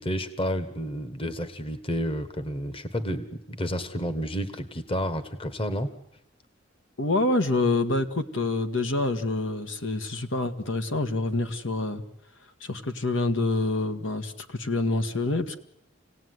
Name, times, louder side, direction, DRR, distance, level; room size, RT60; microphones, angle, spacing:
voice 1, 0.0-5.9, equal, 30° left, 11 dB, 1.4 m, -30 dB
voice 2, 7.0-12.0 12.6-15.6, left 2 dB, 75° left, 8 dB, 1.7 m, -27 dB
27.0 x 17.5 x 9.6 m, 0.80 s
head